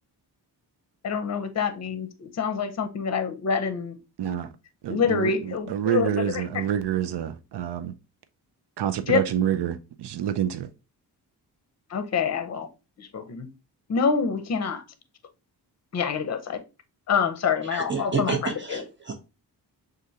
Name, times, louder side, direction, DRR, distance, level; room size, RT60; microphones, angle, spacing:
voice 1, 1.0-3.9 4.9-6.2 9.1-9.2 11.9-12.7 13.1-13.5 13.9-14.8 15.9-16.6 17.1-18.8, left 6 dB, 40° left, 0.6 m, -26 dB
voice 2, 4.2-4.5 4.8-7.9 8.8-10.7, right 10 dB, 75° right, 0.6 m, -27 dB
voice 3, 17.6-19.2, right 4 dB, 30° right, 0.6 m, -29 dB
6.3 x 2.5 x 2.7 m
wide cardioid pair, 115°, 41 cm